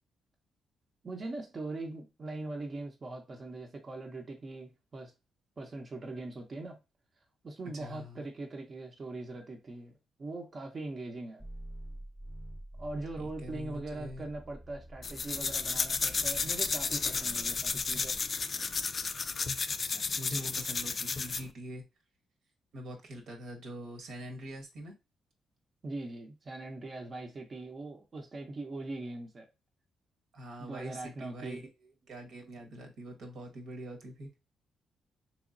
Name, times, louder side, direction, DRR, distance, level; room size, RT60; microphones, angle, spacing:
voice 1, 1.0-5.1 5.6-6.8 7.4-9.9 10.2-11.4 12.8-18.2 25.8-29.5 30.6-31.6, right 2 dB, 40° right, 0.7 m, -41 dB
voice 2, 7.7-8.2 13.2-14.2 19.8-21.8 22.7-24.9 30.3-34.3, equal, 75° right, 1.1 m, -44 dB
sound 1, 11.4-18.3, right 1 dB, 5° right, 0.7 m, -48 dB
sound 2, 15.0-21.5, left 4 dB, 45° left, 0.3 m, -32 dB
3.4 x 3.0 x 2.5 m
cardioid pair, 80°, 0 cm